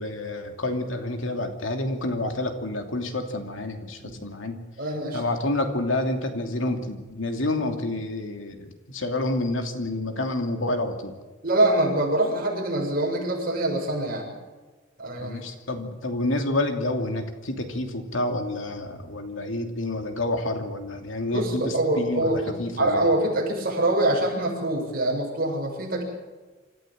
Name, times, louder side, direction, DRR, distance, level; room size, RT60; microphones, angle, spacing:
voice 1, 0.0-4.6 5.1-11.1 15.2-23.1, left 2 dB, 70° left, 5 dB, 2.8 m, -29 dB
voice 2, 4.8-5.2 11.4-14.3 15.0-15.4 21.3-26.0, right 1 dB, 50° right, -1 dB, 7.0 m, -24 dB
26.5 x 14.5 x 7.6 m, 1.3 s
head